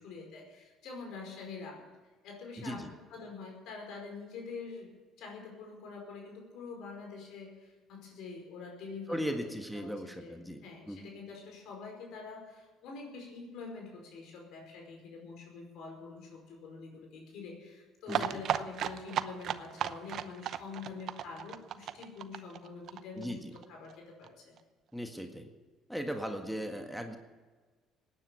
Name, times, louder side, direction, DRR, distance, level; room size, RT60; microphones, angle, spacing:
voice 1, 0.0-1.9 2.2-4.9 5.2-9.9 10.2-10.4 10.6-24.5, left 4 dB, 70° left, 1 dB, 5.0 m, -45 dB
voice 2, 2.6-2.9 9.1-11.1 18.1-18.4 23.2-23.5 24.9-25.5 25.9-27.2, equal, ahead, 4 dB, 1.7 m, -38 dB
sound 1, 18.1-23.6 23.9-24.0 24.2-24.3 24.6-24.7, right 10 dB, 60° right, 0.7 m, -35 dB
18.0 x 9.8 x 7.0 m, 1.4 s
supercardioid pair, 70°, 0 cm